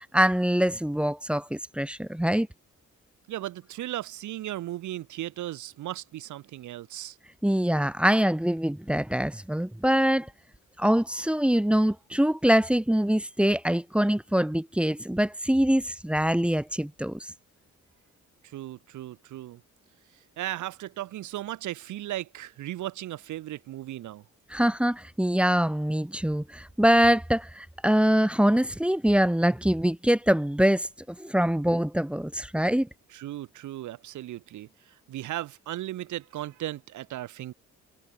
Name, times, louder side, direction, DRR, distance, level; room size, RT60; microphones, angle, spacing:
voice 1, 0.1-2.5 7.4-10.3 10.8-17.3 24.5-32.9, equal, 5° right, 0.8 m, -24 dB
voice 2, 3.3-7.2 18.4-19.6 20.1-24.2 33.1-37.5, right 14 dB, 75° right, 1.1 m, -36 dB
cardioid pair, 90°, 30 cm